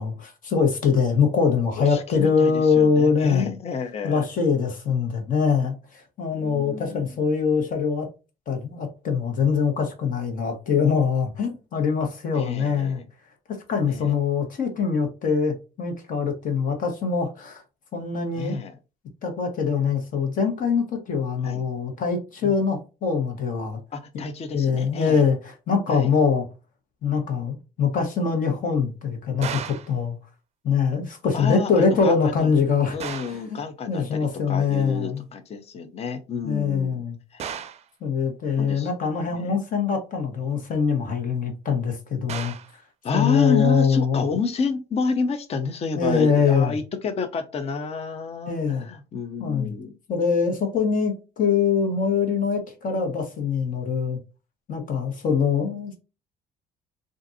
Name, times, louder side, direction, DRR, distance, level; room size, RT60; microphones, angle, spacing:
voice 1, 0.0-3.5 4.0-8.1 8.5-13.0 13.5-17.6 17.9-18.6 19.2-23.8 24.5-26.5 27.0-30.2 30.6-33.6 33.9-35.2 36.4-37.2 38.0-42.5 43.1-44.2 45.9-46.8 48.5-48.9 49.4-49.7 50.1-54.2 54.7-56.0, left 6 dB, 50° left, 1.3 m, -23 dB
voice 2, 1.8-4.2 6.3-7.2 12.3-13.1 13.9-14.1 18.3-18.7 21.4-21.6 22.4-22.5 23.9-25.2 25.9-26.1 31.3-32.5 32.9-37.0 37.3-37.4 38.6-38.9 39.2-39.6 43.0-49.9, left 5 dB, 35° left, 0.6 m, -29 dB
sound 1, 29.4-30.0 33.0-33.5 37.4-37.9 42.3-42.8, right 8 dB, 40° right, 0.5 m, -34 dB
3.7 x 2.6 x 2.6 m
cardioid pair, 110°, 17 cm